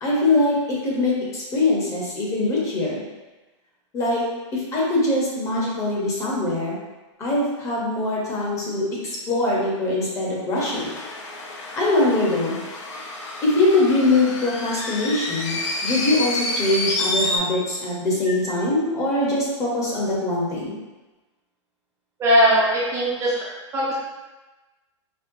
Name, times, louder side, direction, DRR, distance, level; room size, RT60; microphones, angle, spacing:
voice 1, 0.0-3.0 3.9-4.2 4.5-6.8 7.2-11.0 11.7-12.6 13.4-20.8, left 2 dB, 20° left, -5 dB, 0.8 m, -22 dB
sound 1, 10.6-17.4, left 2 dB, 75° left, 0.7 m, -29 dB
voice 2, 22.2-23.3 23.7-23.9, equal, 20° right, -7 dB, 0.5 m, -19 dB
4.3 x 2.1 x 2.6 m, 1.1 s
hypercardioid pair, 145°, 16 cm